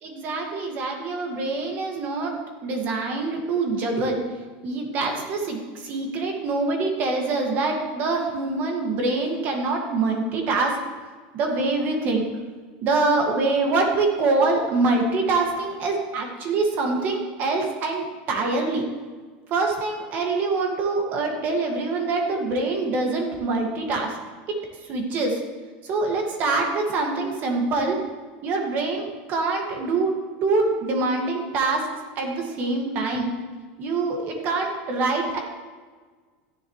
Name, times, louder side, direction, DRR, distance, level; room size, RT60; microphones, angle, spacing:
voice 1, 0.0-4.2 4.6-10.8 11.3-12.2 12.8-18.8 19.5-24.1 24.9-25.4 25.8-28.0 28.4-30.1 30.4-31.8 32.2-33.3 33.8-35.4, right 3 dB, 35° right, 2 dB, 2.1 m, -25 dB
14.0 x 10.0 x 3.3 m, 1.5 s
supercardioid pair, 160°, 5 cm